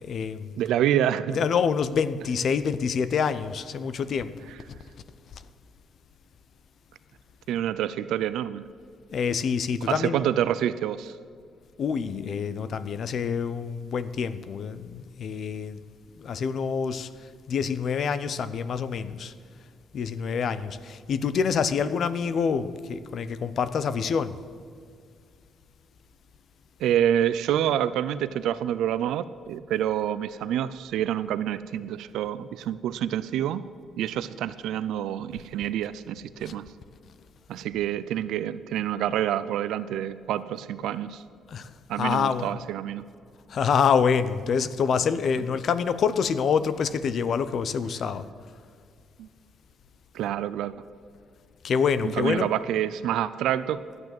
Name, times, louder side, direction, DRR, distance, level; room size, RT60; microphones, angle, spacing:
voice 1, 0.0-0.5 1.3-4.3 9.1-10.2 11.8-15.8 16.2-17.1 17.5-19.3 19.9-24.4 41.5-41.7 42.0-42.5 43.5-48.3 51.6-52.5, left 6 dB, 60° left, 13 dB, 0.7 m, -26 dB
voice 2, 0.6-1.4 7.5-8.6 9.9-11.1 26.8-33.6 34.0-36.6 37.5-41.2 41.9-43.0 49.2-49.3 50.1-50.7 52.0-54.0, right 11 dB, 85° right, 14 dB, 0.4 m, -27 dB
12.0 x 9.3 x 7.7 m, 2.1 s
cardioid pair, 90°, 0 cm